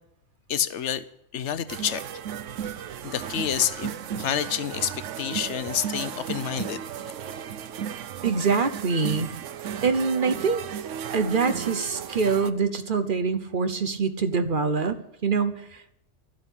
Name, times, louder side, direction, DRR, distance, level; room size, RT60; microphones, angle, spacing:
voice 1, 0.5-1.0 1.3-2.0 3.0-6.8, left 9 dB, 75° left, 1.0 m, -28 dB
sound 1, 1.7-12.5, right 9 dB, 85° right, 1.0 m, -35 dB
voice 2, 8.2-9.3 9.8-10.6 11.1-15.9, right 5 dB, 50° right, 0.9 m, -25 dB
12.5 x 7.8 x 9.9 m
omnidirectional pair, 1.2 m